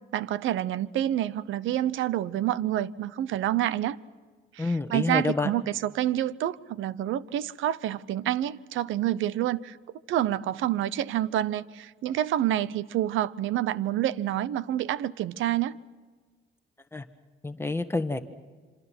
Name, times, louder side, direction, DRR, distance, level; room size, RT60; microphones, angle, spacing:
voice 1, 0.1-4.0 4.5-9.8 10.1-15.8, right 12 dB, 85° right, 0.8 m, -28 dB
voice 2, 4.6-5.5 16.9-17.0 17.4-18.2, left 3 dB, 10° left, 1.4 m, -28 dB
27.0 x 26.0 x 6.1 m
cardioid pair, 90°, 20 cm